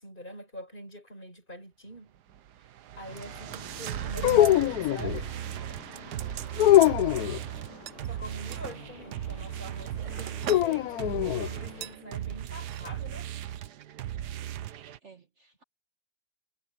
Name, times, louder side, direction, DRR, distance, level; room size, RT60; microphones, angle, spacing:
voice 1, 0.0-2.1 3.0-6.2 7.2-7.3 8.0-13.3, equal, 30° left, 5.7 m, -44 dB
sound 1, 2.3-15.0, right 11 dB, 85° right, 1.5 m, -37 dB
sound 2, 3.2-4.6 4.9-5.2 5.5-7.3 7.9-8.8 9.4-10.8 11.1-11.3 11.8-12.0 12.6-12.8 13.1-13.2, right 12 dB, 65° right, 0.8 m, -42 dB
voice 2, 3.9-4.4 8.9-9.1 15.0-15.6, right 4 dB, 45° right, 1.7 m, -55 dB
sound 3, 4.2-5.2 6.6-7.4 10.5-11.5, left 13 dB, 75° left, 1.1 m, -22 dB
omnidirectional pair, 1.7 m